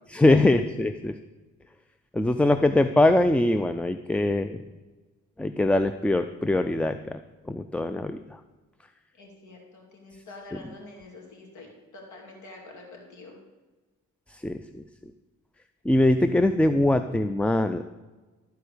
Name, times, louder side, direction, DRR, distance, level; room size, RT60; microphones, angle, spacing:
voice 1, 0.1-1.1 2.1-4.6 5.4-7.2 7.5-8.2 14.4-14.6 15.9-17.8, left 1 dB, 5° left, 10 dB, 0.3 m, -22 dB
voice 2, 9.2-13.4, left 2 dB, 75° left, 0 dB, 2.7 m, -45 dB
13.5 x 4.6 x 6.6 m, 1.2 s
cardioid pair, 90°, 30 cm